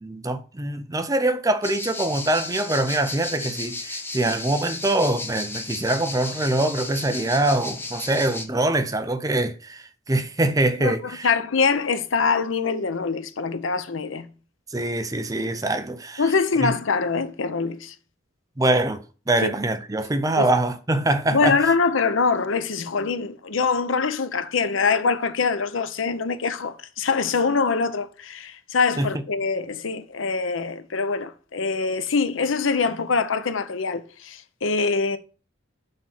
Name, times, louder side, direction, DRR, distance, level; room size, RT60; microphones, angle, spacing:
voice 1, 0.0-11.3 14.7-16.2 16.6-16.7 18.6-21.6 29.0-29.1, right 2 dB, 20° right, 0.6 m, -24 dB
sound 1, 1.6-8.4, left 2 dB, 10° left, 0.8 m, -34 dB
voice 2, 10.8-14.3 16.2-17.9 19.4-19.5 20.4-20.5 21.3-35.2, left 4 dB, 85° left, 0.7 m, -24 dB
6.6 x 4.2 x 5.8 m
head